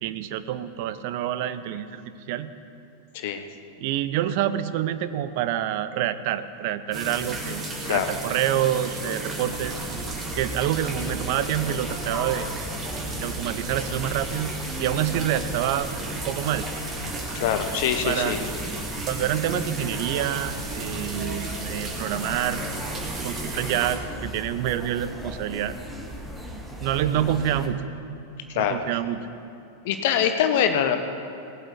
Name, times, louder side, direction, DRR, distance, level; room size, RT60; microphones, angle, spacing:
voice 1, 0.0-2.5 3.8-9.8 10.4-12.5 13.2-14.5 14.8-15.9 16.3-16.7 18.0-18.4 19.0-22.6 23.2-25.7 26.8-27.8 28.5-29.3, right 11 dB, 50° right, 13 dB, 0.7 m, -27 dB
sound 1, 6.9-24.0, right 2 dB, 25° right, 2.2 m, -34 dB
sound 2, 9.5-27.7, right 1 dB, 5° right, 1.6 m, -38 dB
voice 2, 17.3-18.4 28.5-28.8 29.8-31.0, left 9 dB, 50° left, 7 dB, 1.0 m, -23 dB
19.5 x 7.7 x 4.6 m, 2.8 s
figure-of-eight pair, 90°, 0 cm